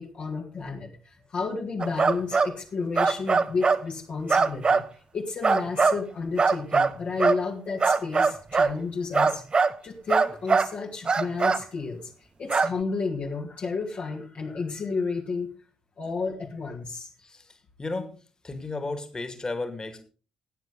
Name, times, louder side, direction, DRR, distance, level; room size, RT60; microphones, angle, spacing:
voice 1, 0.0-4.8 5.1-15.5 16.0-17.1, left 4 dB, 45° left, 0 dB, 1.7 m, -32 dB
sound 1, 1.8-2.5 3.0-3.8 4.3-4.9 5.4-6.0 6.4-7.4 7.8-8.8 9.1-9.8 10.1-10.7 11.0-11.6 12.5-12.7, right 4 dB, 30° right, 0.7 m, -21 dB
voice 2, 17.2-18.1 18.4-20.0, left 3 dB, 25° left, 9 dB, 2.1 m, -34 dB
15.0 x 9.1 x 3.7 m, 0.36 s
figure-of-eight pair, 45°, 3 cm